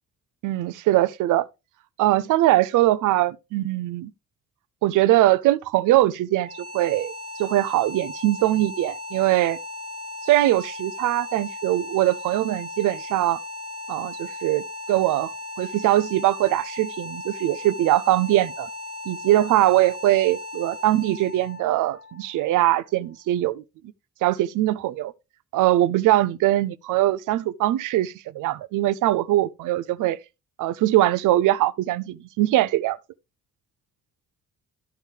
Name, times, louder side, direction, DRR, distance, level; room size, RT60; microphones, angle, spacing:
voice 1, 0.4-1.5 2.0-4.1 4.8-7.1 7.4-9.6 10.2-13.4 13.9-14.6 14.9-15.3 15.6-18.7 19.1-23.6 24.2-25.1 25.5-30.2 30.6-33.0, right 15 dB, 85° right, 0.6 m, -21 dB
sound 1, 6.3-23.3, left 2 dB, 45° right, 1.7 m, -37 dB
13.5 x 4.6 x 3.3 m
cardioid pair, 90°, 30 cm